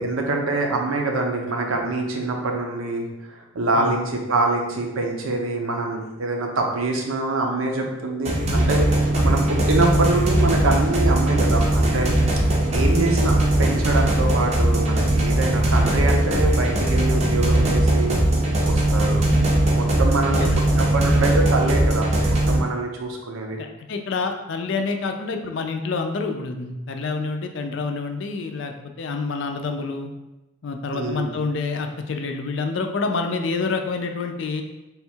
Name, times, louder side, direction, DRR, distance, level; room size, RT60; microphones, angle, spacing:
voice 1, 0.0-12.1 12.7-18.2 18.6-19.2 19.6-20.5 20.8-23.6 30.9-31.3, right 2 dB, 85° right, 2 dB, 0.7 m, -25 dB
sound 1, 8.2-22.6, right 1 dB, 30° right, 0.5 m, -19 dB
voice 2, 23.6-28.7 29.0-30.1 30.6-34.6, left 4 dB, 60° left, 5 dB, 0.4 m, -27 dB
3.5 x 2.3 x 4.3 m, 0.99 s
head